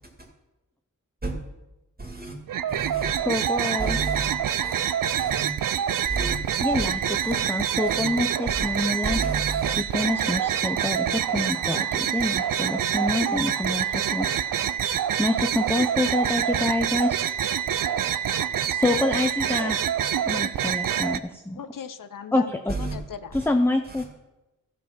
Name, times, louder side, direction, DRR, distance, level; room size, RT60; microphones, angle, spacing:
voice 1, 2.0-2.4 2.7-3.1 3.8-4.4 4.6-4.8 5.2-5.5 6.0-6.4 6.7-6.9 7.2-7.5 7.8-8.1 8.5-8.7 9.0-9.8 22.7-23.0 23.3-23.5 23.8-24.1, right 3 dB, 30° right, 2.2 m, -32 dB
sound 1, 2.5-21.2, right 9 dB, 75° right, 0.5 m, -26 dB
voice 2, 3.3-4.0 6.6-7.0 7.3-9.2 9.8-14.3 15.2-17.4 18.7-19.8 20.2-21.6 22.3-22.8 23.3-24.1, left 2 dB, 5° left, 0.6 m, -26 dB
voice 3, 21.6-23.4, left 7 dB, 75° left, 0.6 m, -39 dB
14.5 x 5.2 x 5.9 m
wide cardioid pair, 70°, 33 cm